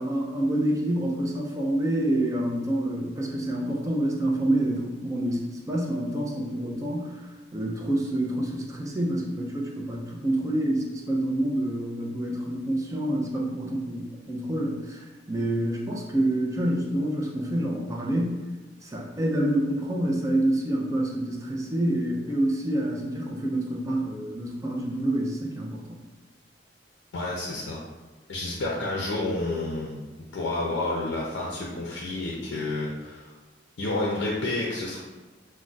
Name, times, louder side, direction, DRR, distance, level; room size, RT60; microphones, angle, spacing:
voice 1, 0.0-7.2 7.5-18.4 18.8-26.0, right 1 dB, 20° right, -2 dB, 0.4 m, -27 dB
voice 2, 27.1-27.8 28.3-30.0 30.3-33.3 33.8-35.0, left 2 dB, 80° left, -3 dB, 0.5 m, -30 dB
2.3 x 2.1 x 3.9 m, 1.2 s
head